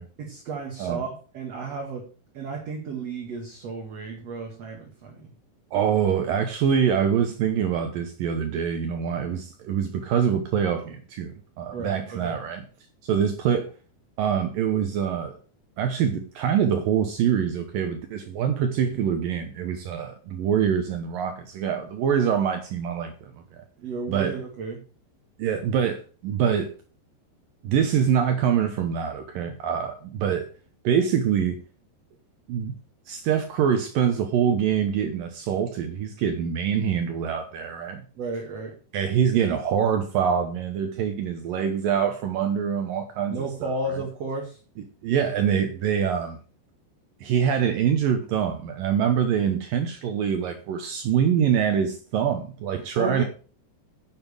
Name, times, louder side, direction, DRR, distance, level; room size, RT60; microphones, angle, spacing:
voice 1, 0.2-2.1 2.3-5.3 11.7-12.4 23.8-24.8 38.2-38.7 43.3-44.6 52.9-53.2, right 3 dB, 50° right, 2.3 m, -33 dB
voice 2, 5.7-11.3 11.6-12.6 13.0-13.7 14.2-15.4 15.8-23.3 24.1-24.3 25.4-26.7 27.6-30.5 30.8-31.6 32.5-32.7 33.1-38.0 38.9-43.7 45.0-46.4 47.2-53.2, right 8 dB, 70° right, 2.2 m, -24 dB
9.1 x 7.8 x 6.7 m
omnidirectional pair, 5.1 m